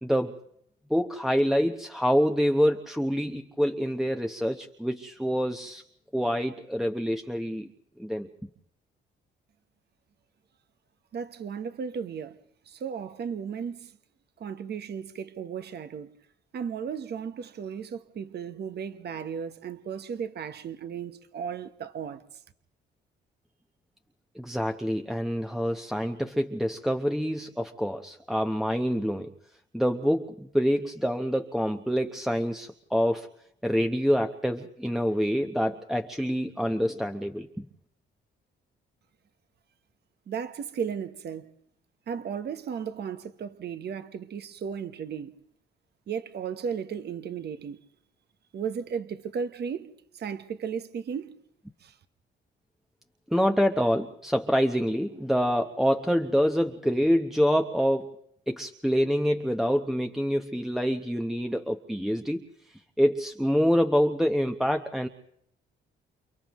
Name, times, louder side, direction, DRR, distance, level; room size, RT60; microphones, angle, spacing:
voice 1, 0.0-0.3 0.9-5.8 6.1-7.7 8.0-8.3 24.3-29.3 29.7-33.3 33.6-37.6 53.3-58.2 58.5-62.4 63.0-65.1, equal, ahead, 0.9 m, -26 dB
voice 2, 11.1-12.4 12.7-13.9 14.4-16.1 16.5-22.2 40.3-41.5 42.1-45.4 46.1-47.8 48.5-51.4 51.8-51.9, right 7 dB, 55° right, 1.1 m, -35 dB
29.0 x 29.0 x 3.1 m
cardioid pair, 90°, 20 cm